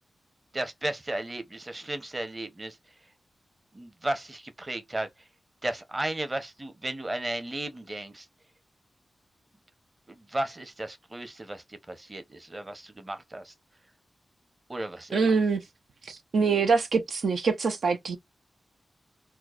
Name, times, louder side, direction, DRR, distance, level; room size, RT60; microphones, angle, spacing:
voice 1, 0.5-2.8 3.7-5.1 5.6-8.3 10.1-13.5 14.7-15.2, right 1 dB, 25° right, 0.9 m, -34 dB
voice 2, 15.1-15.6 16.1-18.2, right 5 dB, 80° right, 0.6 m, -24 dB
4.5 x 2.1 x 2.5 m
cardioid pair, 70°, 0 cm